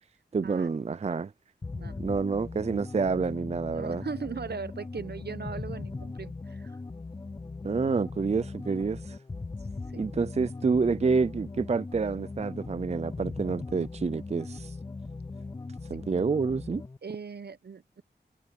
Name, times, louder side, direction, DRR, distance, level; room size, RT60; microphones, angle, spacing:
voice 1, 0.3-1.3 2.0-4.0 7.6-9.2 10.0-14.7 15.9-16.8, right 4 dB, 40° right, 0.4 m, -28 dB
sound 1, 1.6-17.0, left 3 dB, 20° left, 0.4 m, -39 dB
voice 2, 3.7-6.8 9.9-10.0 17.0-18.0, right 5 dB, 70° right, 0.9 m, -39 dB
wide cardioid pair, 70°, 18 cm